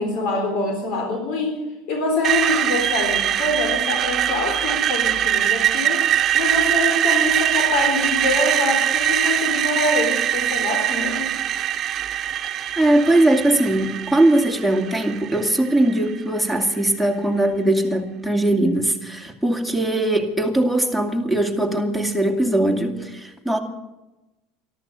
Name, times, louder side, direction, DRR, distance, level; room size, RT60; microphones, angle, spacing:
voice 1, 0.0-1.6 1.9-6.1 6.3-11.3, left 2 dB, 65° left, 4 dB, 3.6 m, -25 dB
Screech, 2.2-16.2, right 11 dB, 40° right, 1.2 m, -22 dB
voice 2, 12.8-23.6, right 1 dB, 5° left, 5 dB, 2.4 m, -20 dB
13.5 x 13.0 x 8.3 m, 1.0 s
supercardioid pair, 110°, 0 cm